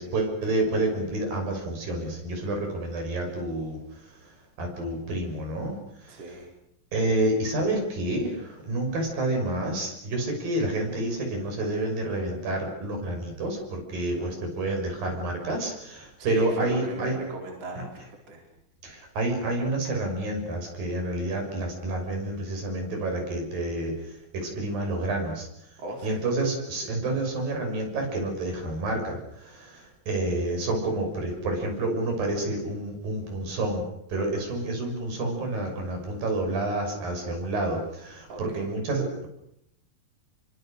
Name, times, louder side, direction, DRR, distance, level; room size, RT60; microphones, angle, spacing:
voice 1, 0.0-3.8 4.6-5.7 6.9-17.2 18.8-23.9 24.3-25.5 26.0-33.8 34.1-39.3, right 2 dB, 75° right, 3 dB, 7.8 m, -29 dB
voice 2, 6.1-6.5 14.1-14.4 16.2-18.4 25.8-26.2 38.3-38.7, right 2 dB, 40° right, 1 dB, 5.3 m, -38 dB
28.5 x 24.5 x 6.6 m, 0.76 s
omnidirectional pair, 4.1 m